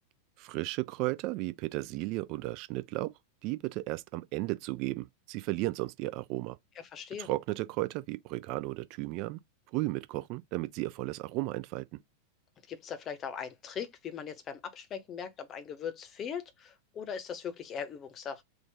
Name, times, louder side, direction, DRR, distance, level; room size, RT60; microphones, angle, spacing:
voice 1, 0.4-3.1 3.4-6.6 7.2-9.4 9.7-11.9, right 19 dB, 40° right, 0.3 m, -34 dB
voice 2, 6.8-7.3 12.7-18.4, left 7 dB, 30° left, 0.8 m, -40 dB
3.8 x 2.4 x 3.4 m
figure-of-eight pair, 90°, 0 cm